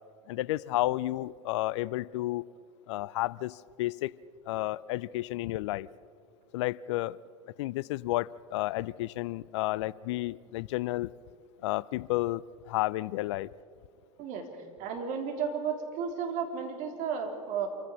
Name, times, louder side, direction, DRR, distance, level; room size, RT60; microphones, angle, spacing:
voice 1, 0.3-2.4 2.9-4.1 4.5-5.9 6.5-7.2 7.6-11.1 11.6-13.5, left 17 dB, 60° left, 22 dB, 0.5 m, -31 dB
voice 2, 14.8-17.7, right 6 dB, 50° right, 4 dB, 3.5 m, -33 dB
27.5 x 15.0 x 6.4 m, 2.3 s
figure-of-eight pair, 80°, 17 cm